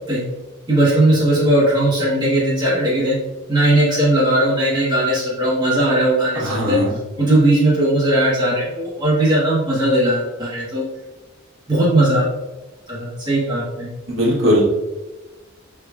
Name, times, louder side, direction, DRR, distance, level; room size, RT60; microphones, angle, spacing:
voice 1, 0.7-3.2 3.5-6.8 7.2-10.8 11.7-12.2 12.9-13.9, right 1 dB, 20° right, -6 dB, 0.8 m, -18 dB
voice 2, 6.3-6.9 14.1-14.6, equal, 65° right, -5 dB, 1.0 m, -18 dB
5.0 x 3.4 x 2.3 m, 1.1 s
head